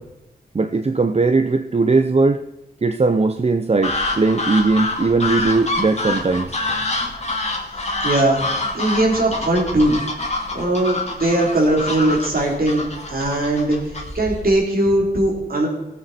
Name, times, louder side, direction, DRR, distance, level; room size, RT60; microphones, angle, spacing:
voice 1, 0.5-2.4 2.8-6.5, right 3 dB, 40° right, 8 dB, 0.7 m, -19 dB
sound 1, 3.8-14.5, left 2 dB, 45° left, 2.5 m, -26 dB
voice 2, 8.0-8.4 8.7-10.0 10.5-13.8 14.1-15.7, right 1 dB, 65° right, -1 dB, 3.9 m, -19 dB
16.5 x 8.4 x 4.4 m, 0.96 s
wide cardioid pair, 70°, 16 cm